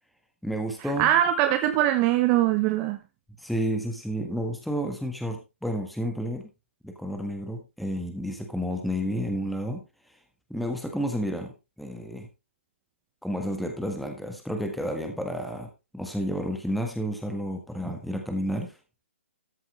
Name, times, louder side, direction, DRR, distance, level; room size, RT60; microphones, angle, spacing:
voice 1, 0.4-1.1 3.4-6.5 6.8-9.8 10.5-12.3 13.2-18.7, equal, ahead, 3 dB, 1.5 m, -31 dB
voice 2, 1.0-3.0, right 12 dB, 25° right, 8 dB, 0.8 m, -22 dB
13.5 x 7.8 x 3.2 m, 0.26 s
figure-of-eight pair, 135°, 7 cm